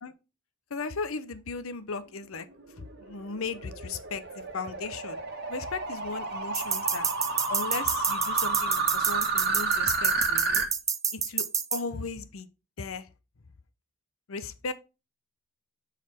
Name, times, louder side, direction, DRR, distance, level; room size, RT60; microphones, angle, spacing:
voice 1, 0.7-2.5 3.0-4.2 4.5-5.2 5.5-7.1 7.5-10.6 11.1-11.5 11.7-12.5 12.8-13.1 14.3-14.7, left 4 dB, 85° left, 0.7 m, -36 dB
sound 1, 2.6-10.7, right 3 dB, 50° right, 1.3 m, -30 dB
sound 2, 6.5-11.8, right 7 dB, 15° right, 0.4 m, -28 dB
7.3 x 4.1 x 4.3 m
head